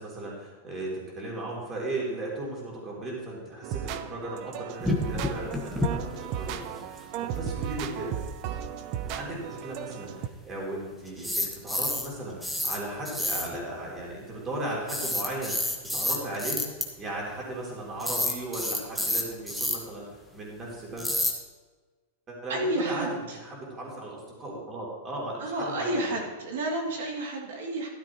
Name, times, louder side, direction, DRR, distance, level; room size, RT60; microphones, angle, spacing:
voice 1, 0.0-8.2 8.9-16.6 17.0-20.1 20.3-21.2 22.3-26.2, right 1 dB, 20° right, -3 dB, 3.1 m, -36 dB
sound 1, 3.6-10.3, right 9 dB, 40° right, 0.5 m, -35 dB
sound 2, 4.8-5.9 6.1-6.3 6.6-6.7 11.1-12.2 12.4-12.8 13.1-13.6 14.9-16.8 18.0-19.8 21.0-21.3, left 1 dB, ahead, 1.1 m, -28 dB
voice 2, 22.5-23.4 25.4-27.9, right 1 dB, 80° right, -1 dB, 2.7 m, -31 dB
13.0 x 11.5 x 3.1 m, 1.4 s
supercardioid pair, 160°, 0 cm